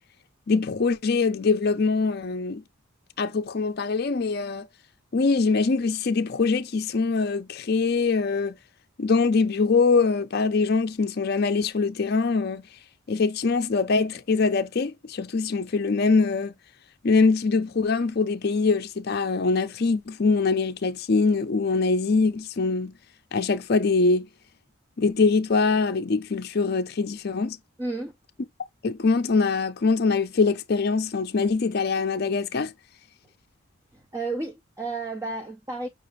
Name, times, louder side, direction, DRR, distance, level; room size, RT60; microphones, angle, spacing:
voice 1, 0.5-2.6 3.2-4.7 5.1-8.6 9.0-12.6 13.1-16.5 17.0-22.9 23.3-24.3 25.0-27.6 28.8-32.7, left 4 dB, 50° left, 0.5 m, -23 dB
voice 2, 27.8-28.1 33.9-35.9, right 3 dB, 15° right, 0.4 m, -32 dB
5.9 x 2.4 x 3.1 m
head